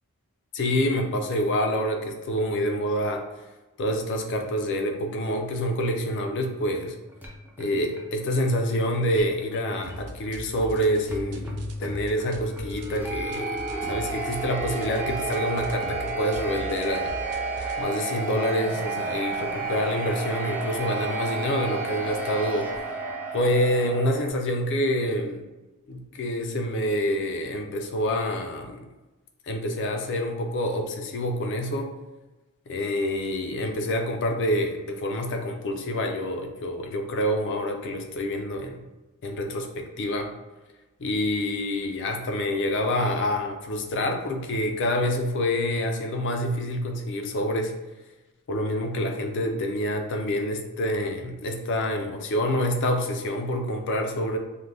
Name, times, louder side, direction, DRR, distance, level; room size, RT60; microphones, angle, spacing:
voice 1, 0.5-3.2 3.8-6.9 7.6-13.6 13.8-17.1 17.8-22.7 23.3-25.4 25.9-28.9 29.5-31.9 32.7-38.8 39.2-40.3 41.0-47.7 48.5-54.4, left 1 dB, 55° left, 4 dB, 0.4 m, -27 dB
sound 1, 6.2-24.3, right 3 dB, 10° right, 0.4 m, -33 dB
sound 2, 9.8-17.8, right 2 dB, 90° right, 0.4 m, -40 dB
2.4 x 2.1 x 3.2 m, 1.1 s
head